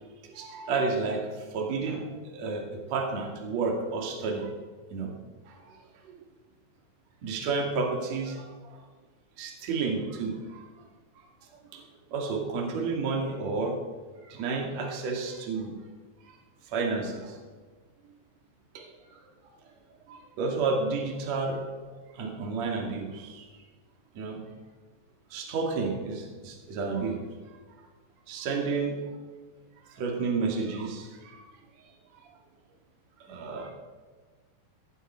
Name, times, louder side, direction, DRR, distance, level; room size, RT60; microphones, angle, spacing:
voice 1, 0.2-4.5 4.9-5.1 5.5-5.8 6.0-6.1 7.2-8.8 9.4-10.6 11.7-11.8 12.1-13.8 14.2-15.7 16.2-16.4 16.6-17.4 18.7-19.2 20.1-21.7 22.1-23.5 24.1-24.4 25.3-27.2 28.3-29.0 29.9-31.4 33.2-33.7, right 4 dB, 45° right, 1 dB, 2.7 m, -31 dB
16.5 x 13.0 x 4.5 m, 1.4 s
omnidirectional pair, 5.5 m